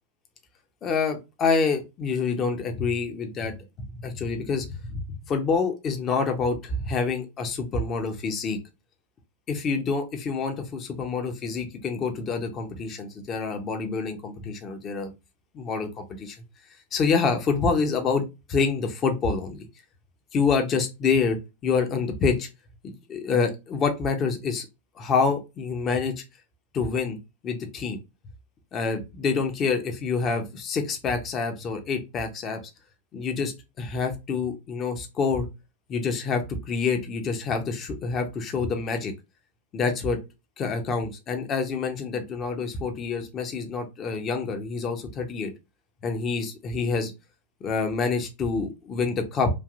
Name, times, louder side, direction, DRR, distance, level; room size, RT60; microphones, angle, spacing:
voice 1, 0.8-3.5 4.0-5.0 5.3-8.6 9.5-15.1 15.5-16.4 16.9-19.7 20.3-22.5 22.8-24.7 25.0-26.2 26.7-27.2 27.4-28.0 28.7-32.6 33.1-33.5 33.8-35.5 35.9-39.1 39.7-40.2 40.6-45.5 46.0-47.1 47.6-49.5, left 5 dB, 30° left, 4 dB, 0.8 m, -27 dB
3.3 x 2.5 x 2.4 m, 0.25 s
hypercardioid pair, 95°, 0 cm